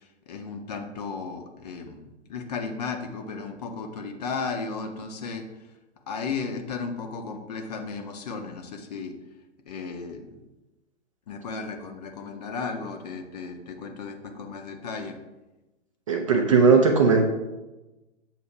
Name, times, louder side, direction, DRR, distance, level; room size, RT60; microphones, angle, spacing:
voice 1, 0.0-5.4 6.1-9.1 9.7-10.4 11.3-15.2, left 4 dB, 35° left, 5 dB, 0.7 m, -35 dB
voice 2, 16.1-17.3, right 4 dB, 30° right, 3 dB, 0.4 m, -18 dB
7.3 x 2.7 x 5.3 m, 1.1 s
figure-of-eight pair, 130°, 36 cm